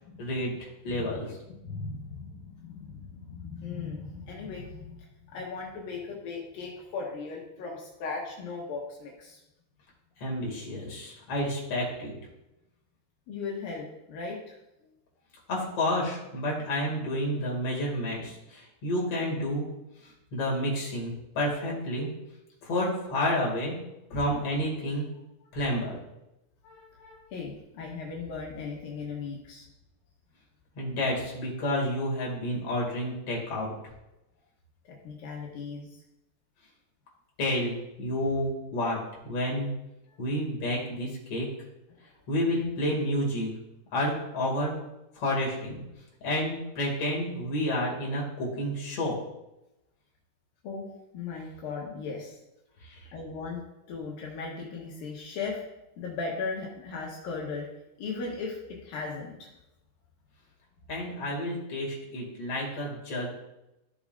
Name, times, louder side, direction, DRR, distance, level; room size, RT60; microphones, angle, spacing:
voice 1, 0.2-1.4 10.2-12.2 15.5-19.7 20.0-22.1 22.6-23.8 24.1-25.1 25.5-26.0 30.7-33.7 37.4-39.0 39.2-39.7 40.2-41.5 42.3-43.5 43.9-44.7 45.1-45.8 46.2-49.1 52.8-53.0 60.9-63.3, left 1 dB, 45° left, -3 dB, 3.4 m, -30 dB
voice 2, 1.5-9.4 13.3-14.6 26.6-29.6 34.8-36.0 42.0-42.1 50.6-50.9 51.1-52.4 53.1-55.6 56.0-57.7 58.0-59.5, left 4 dB, 80° left, -2 dB, 3.0 m, -37 dB
13.5 x 6.8 x 2.6 m, 0.90 s
omnidirectional pair, 4.1 m